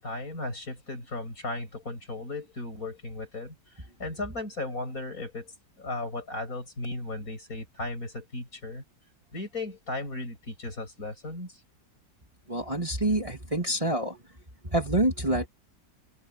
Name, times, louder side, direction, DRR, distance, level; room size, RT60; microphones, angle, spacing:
voice 1, 0.0-8.8 9.3-11.6, left 2 dB, 50° left, 7.7 m, -36 dB
voice 2, 12.5-14.2 14.6-15.5, right 1 dB, 15° right, 3.2 m, -27 dB
omnidirectional pair, 2.0 m